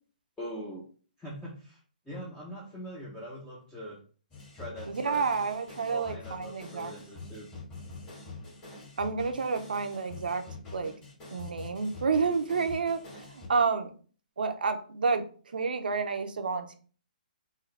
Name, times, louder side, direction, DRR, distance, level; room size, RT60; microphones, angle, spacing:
voice 1, 0.4-0.8 1.2-1.8 2.1-4.0 4.5-5.3 5.9-7.5, equal, 5° left, -7 dB, 0.8 m, -42 dB
sound 1, 4.3-13.5, left 3 dB, 20° left, 1.9 m, -45 dB
voice 2, 4.9-6.9 9.0-10.4 10.7-10.9 11.3-13.9 14.4-15.2 15.5-16.8, right 5 dB, 75° right, 7 dB, 0.7 m, -29 dB
3.7 x 2.7 x 3.3 m, 0.40 s
hypercardioid pair, 150°, 5 cm